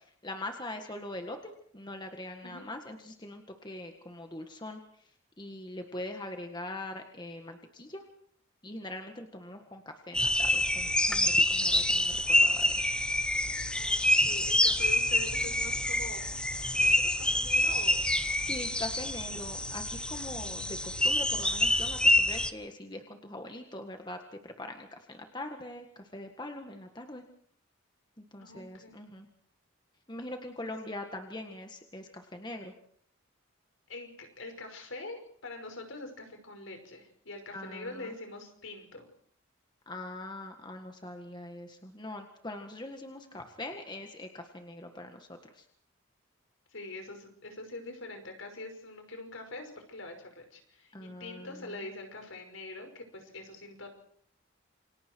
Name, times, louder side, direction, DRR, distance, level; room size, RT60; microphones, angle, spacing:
voice 1, 0.0-5.1 5.4-8.0 8.6-13.1 18.4-27.2 28.2-29.3 30.1-32.7 37.5-38.1 39.8-45.6 50.9-51.9, left 1 dB, 20° left, 4 dB, 1.8 m, -42 dB
sound 1, 10.1-22.5, left 1 dB, 5° left, 0.9 m, -27 dB
voice 2, 13.7-16.2 16.7-18.1 28.4-29.0 33.9-39.1 46.7-53.9, left 2 dB, 70° left, 5 dB, 5.6 m, -44 dB
28.5 x 25.0 x 4.7 m, 0.62 s
head